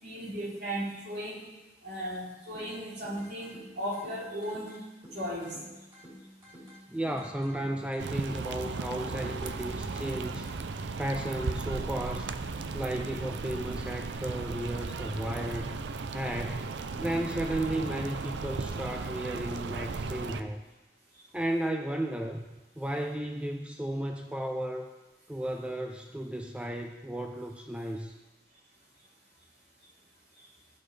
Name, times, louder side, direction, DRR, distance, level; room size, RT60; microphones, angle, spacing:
voice 1, 0.0-1.5 1.8-4.8 5.1-5.6 16.9-17.2, equal, 60° right, -6 dB, 3.4 m, -36 dB
sound 1, 2.5-10.5, equal, 30° right, 3.1 m, -51 dB
voice 2, 6.9-10.5 11.0-12.3 12.7-15.8 16.1-16.7 17.0-20.6 21.3-22.4 22.8-24.9 25.3-28.1, right 1 dB, 5° right, 4 dB, 0.4 m, -34 dB
sound 2, 8.0-20.4, right 4 dB, 80° right, 0.5 m, -36 dB
16.0 x 6.1 x 3.3 m, 1.1 s
head